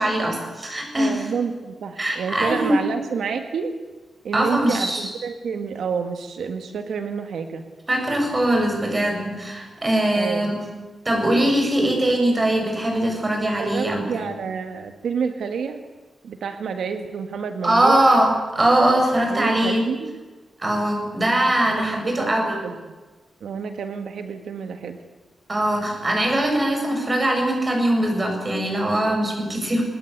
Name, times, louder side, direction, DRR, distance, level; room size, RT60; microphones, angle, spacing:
voice 1, 0.0-1.2 2.0-2.8 4.3-5.1 7.9-10.6 11.0-14.3 17.6-19.8 20.6-22.6 25.5-29.8, right 1 dB, 25° right, 2 dB, 7.8 m, -21 dB
voice 2, 1.0-3.7 4.2-7.6 10.1-10.5 13.6-15.8 16.2-18.0 19.3-20.1 21.6-22.3 22.6-22.7 23.4-25.0, right 6 dB, 85° right, 7 dB, 1.8 m, -29 dB
26.5 x 21.0 x 8.2 m, 1.3 s
wide cardioid pair, 125°, 0 cm